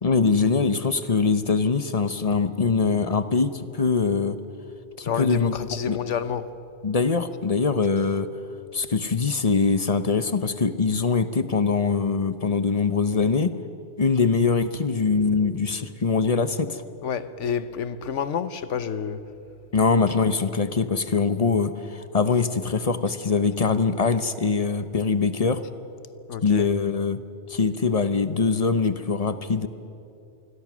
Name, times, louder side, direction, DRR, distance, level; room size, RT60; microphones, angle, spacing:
voice 1, 0.0-4.4 5.0-5.5 5.9-6.0 6.8-8.3 8.7-13.5 14.0-16.8 19.7-25.6 26.4-27.2 27.5-29.7, left 4 dB, 35° left, 0.8 m, -23 dB
voice 2, 5.0-6.5 17.0-19.3 26.3-26.7, left 7 dB, 80° left, 1.2 m, -29 dB
26.5 x 21.5 x 6.2 m
omnidirectional pair, 1.2 m